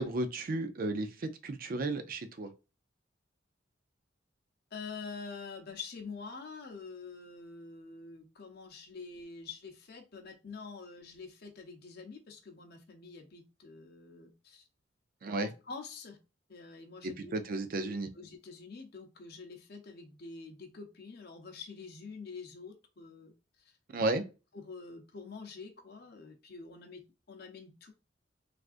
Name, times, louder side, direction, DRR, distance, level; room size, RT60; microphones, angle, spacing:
voice 1, 0.0-2.5 15.2-15.5 17.0-18.1 23.9-24.2, right 2 dB, 50° right, 0.4 m, -33 dB
voice 2, 4.7-14.6 15.4-16.2 16.5-17.3 17.8-23.3 23.6-23.7 24.2-27.9, left 4 dB, 60° left, 0.7 m, -46 dB
3.4 x 2.5 x 2.4 m
head